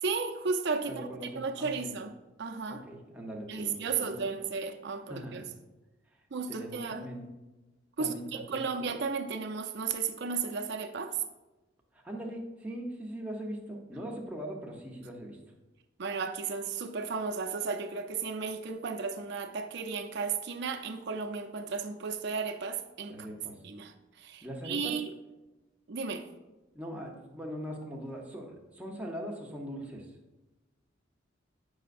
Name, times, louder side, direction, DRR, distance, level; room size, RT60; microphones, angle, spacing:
voice 1, 0.0-1.1 1.4-2.1 2.4-2.8 3.5-5.5 6.3-7.1 8.0-11.2 16.0-23.3 23.6-25.1 25.9-26.3, right 5 dB, 60° right, 5 dB, 0.5 m, -34 dB
voice 2, 0.8-1.9 2.7-4.3 5.1-5.5 6.5-7.2 8.0-8.6 11.9-15.4 23.1-23.6 24.4-24.9 26.7-30.1, equal, 5° right, -1 dB, 0.8 m, -41 dB
7.8 x 5.6 x 2.5 m, 1.1 s
head